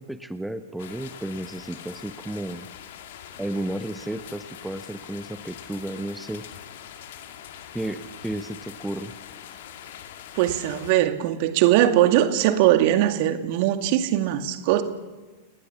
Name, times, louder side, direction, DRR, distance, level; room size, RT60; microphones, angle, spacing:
voice 1, 0.0-2.7 3.4-6.5 7.7-9.1, right 1 dB, 5° right, 11 dB, 1.2 m, -33 dB
sound 1, 0.8-10.9, left 10 dB, 55° left, 2.4 m, -43 dB
voice 2, 10.4-14.8, right 13 dB, 50° right, 9 dB, 2.1 m, -20 dB
30.0 x 20.0 x 7.1 m, 1.3 s
figure-of-eight pair, 90°, 0 cm